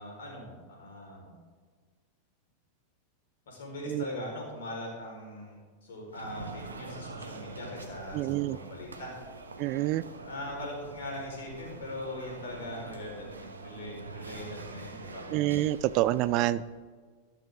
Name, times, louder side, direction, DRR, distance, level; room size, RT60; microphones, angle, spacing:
voice 1, 0.0-1.4 3.5-9.1 10.3-15.3, left 1 dB, 65° left, 0 dB, 4.5 m, -41 dB
sound 1, 6.1-16.7, right 3 dB, 80° right, 1.2 m, -45 dB
voice 2, 8.1-8.6 9.6-10.0 15.3-16.6, right 15 dB, 45° right, 18 dB, 0.4 m, -27 dB
13.5 x 13.0 x 3.7 m, 1.5 s
figure-of-eight pair, 90°, 0 cm